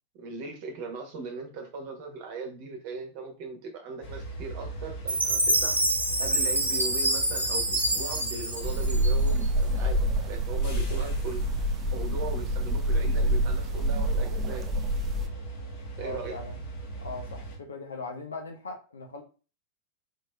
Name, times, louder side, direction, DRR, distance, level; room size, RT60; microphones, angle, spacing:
voice 1, 0.1-5.8 6.2-11.5 11.9-14.7 16.0-16.4, right 3 dB, 45° right, 1.1 m, -39 dB
sound 1, 4.0-17.6, right 2 dB, 45° left, 1.2 m, -39 dB
Chime, 5.1-9.4, right 1 dB, 80° right, 0.8 m, -26 dB
sound 2, 8.6-15.3, right 1 dB, 25° right, 0.5 m, -27 dB
voice 2, 16.0-16.6 17.0-19.2, left 3 dB, 70° left, 0.7 m, -39 dB
4.6 x 3.0 x 2.3 m
figure-of-eight pair, 90°, 0 cm